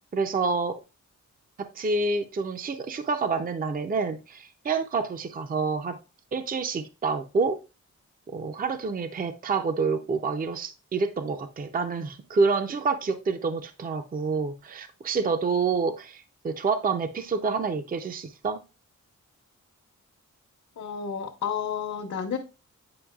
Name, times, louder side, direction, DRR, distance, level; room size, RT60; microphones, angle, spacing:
voice 1, 0.1-0.8 1.6-6.0 6.3-7.6 8.3-18.6, right 4 dB, 30° right, 8 dB, 0.5 m, -28 dB
voice 2, 20.8-22.4, left 7 dB, 70° left, -1 dB, 0.9 m, -31 dB
8.7 x 5.2 x 2.3 m, 0.30 s
wide cardioid pair, 135°, 30 cm